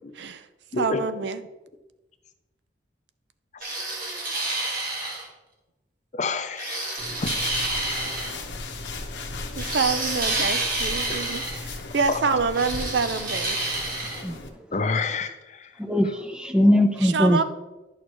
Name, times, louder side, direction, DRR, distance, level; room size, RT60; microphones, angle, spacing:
voice 1, 0.1-0.5 0.8-1.4 9.6-13.6 17.0-17.4, right 4 dB, 70° right, 12 dB, 0.5 m, -26 dB
sound 1, 3.6-5.3 6.6-8.4 9.6-11.6 12.5-14.2, right 2 dB, 50° right, 1.8 m, -29 dB
voice 2, 6.1-7.3 12.1-12.2 14.7-15.7, left 4 dB, 40° left, 8 dB, 0.6 m, -28 dB
sound 2, 7.0-14.5, left 3 dB, 80° left, 1.0 m, -36 dB
voice 3, 15.8-17.4, left 1 dB, 5° right, 6 dB, 0.5 m, -20 dB
11.0 x 6.4 x 3.1 m, 1.1 s
head